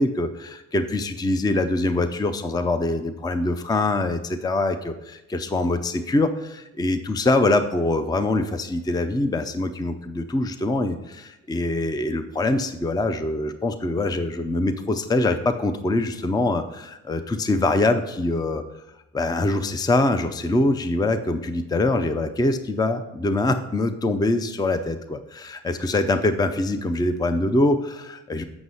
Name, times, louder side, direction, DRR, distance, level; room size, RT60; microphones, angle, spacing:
voice 1, 0.0-18.6 19.1-28.4, left 2 dB, 10° left, 9 dB, 0.5 m, -24 dB
7.9 x 6.0 x 5.5 m, 0.93 s
wide cardioid pair, 120°, 31 cm